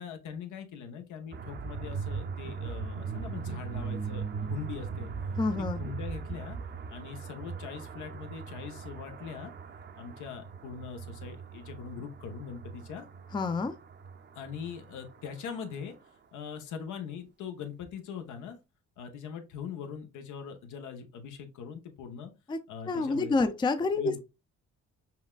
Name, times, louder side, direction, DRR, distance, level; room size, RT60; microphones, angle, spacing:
voice 1, 0.0-4.2 4.5-5.1 5.6-6.6 6.9-9.5 10.0-13.1 14.3-15.9 16.3-18.6 19.0-22.3 22.7-23.4 23.9-24.2, left 7 dB, 80° left, 0.8 m, -41 dB
sound 1, 1.3-15.2, right 5 dB, 35° right, 0.6 m, -39 dB
voice 2, 5.4-5.8 13.3-13.7 22.5-22.6 22.9-24.2, left 3 dB, 15° left, 0.4 m, -28 dB
5.6 x 2.2 x 2.3 m
cardioid pair, 90°, 30 cm